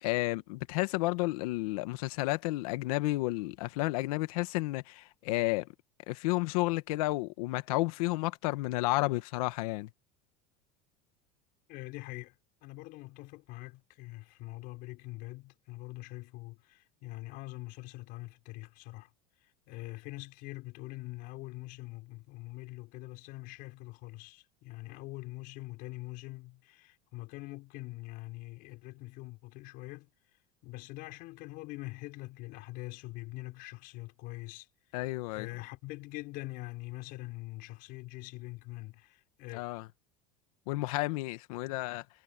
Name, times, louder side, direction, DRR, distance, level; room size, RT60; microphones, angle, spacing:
voice 1, 0.0-5.7 6.1-9.9 34.9-35.5 39.5-39.9 40.7-42.0, left 21 dB, 80° left, 1.6 m, -31 dB
voice 2, 11.7-12.4 12.6-19.1 19.4-30.1 30.6-34.7 35.3-39.6, left 20 dB, 55° left, 5.6 m, -44 dB
cardioid pair, 160°, 18 cm